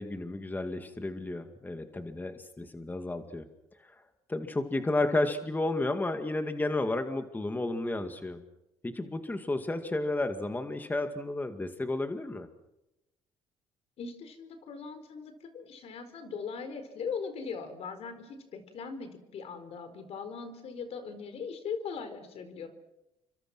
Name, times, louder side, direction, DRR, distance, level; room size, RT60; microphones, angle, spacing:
voice 1, 0.0-3.4 3.8-3.9 4.3-8.4 8.8-12.5, left 2 dB, 15° left, 7 dB, 2.1 m, -32 dB
voice 2, 14.0-22.7, left 5 dB, 65° left, 9 dB, 4.6 m, -40 dB
30.0 x 25.0 x 6.2 m, 0.93 s
cardioid pair, 85°, 11 cm